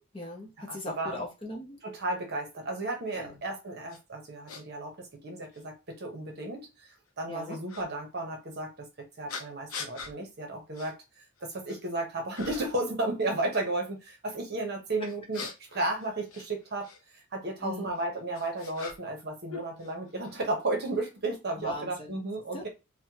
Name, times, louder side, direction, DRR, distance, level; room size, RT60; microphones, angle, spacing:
voice 1, 0.0-1.8 3.1-3.4 7.3-7.6 17.6-17.9 21.6-22.2 22.5-22.6, left 1 dB, 25° left, 0.8 m, -39 dB
voice 2, 0.7-1.2 1.8-6.9 7.2-15.4 15.7-22.7, right 2 dB, 50° right, 0.9 m, -34 dB
sound 1, 3.9-4.0 4.5-4.6 5.5-5.6 7.7-7.9 9.3-10.1 10.7-10.9 11.4-11.9 12.3-12.8 15.0-17.0 17.9-19.2 19.5-20.4, left 4 dB, 70° left, 0.6 m, -42 dB
3.1 x 2.2 x 2.8 m
head